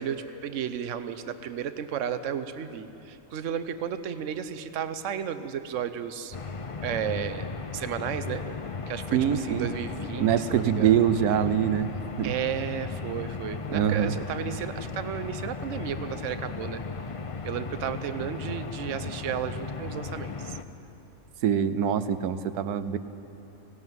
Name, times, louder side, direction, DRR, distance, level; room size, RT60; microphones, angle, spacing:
voice 1, 0.0-6.4 6.8-8.4 8.9-11.0 12.2-16.8 17.4-20.6, right 8 dB, 60° right, 11 dB, 1.1 m, -33 dB
sound 1, 6.3-20.6, left 4 dB, 50° left, 0.4 m, -36 dB
voice 2, 9.1-9.7 10.2-11.9 12.2-12.3 13.7-14.2 21.4-23.0, right 9 dB, 85° right, 12 dB, 1.2 m, -24 dB
18.0 x 17.0 x 9.2 m, 2.8 s
omnidirectional pair, 1.6 m